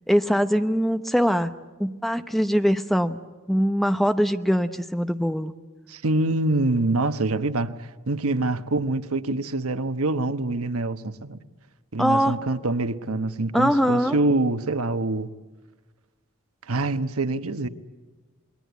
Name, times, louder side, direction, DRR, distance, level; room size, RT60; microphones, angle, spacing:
voice 1, 0.1-1.5 1.8-3.2 3.5-5.5 12.0-12.3 13.5-14.2, equal, ahead, 0.7 m, -22 dB
voice 2, 5.9-11.4 11.9-15.3 16.6-17.7, right 2 dB, 80° right, 1.2 m, -25 dB
28.0 x 21.5 x 8.2 m
head